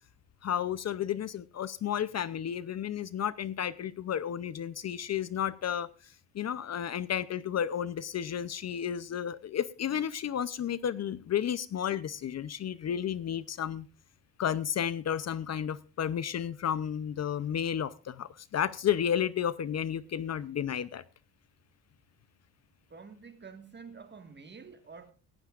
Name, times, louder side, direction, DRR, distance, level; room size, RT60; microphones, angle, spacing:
voice 1, 0.4-5.9 6.3-13.9 14.4-21.0, left 9 dB, 40° left, 0.6 m, -32 dB
voice 2, 22.9-25.1, right 5 dB, 25° right, 1.7 m, -48 dB
17.5 x 15.5 x 2.4 m
cardioid pair, 115°, 41 cm